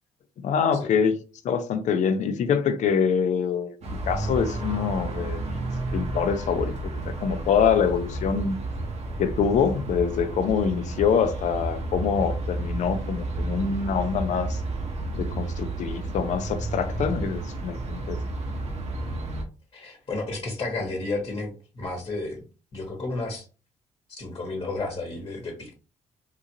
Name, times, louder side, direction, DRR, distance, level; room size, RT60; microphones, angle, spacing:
voice 1, 0.4-1.2 1.4-3.7 4.1-5.6 5.9-6.7 7.0-8.6 9.2-14.6 15.1-18.2, left 7 dB, 65° left, 0.5 m, -25 dB
sound 1, 3.8-19.4, right 2 dB, 55° right, 0.9 m, -31 dB
voice 2, 19.7-22.4 22.7-23.5 24.2-25.7, left 2 dB, 35° left, 1.1 m, -32 dB
3.7 x 2.5 x 2.9 m
cardioid pair, 80°, 13 cm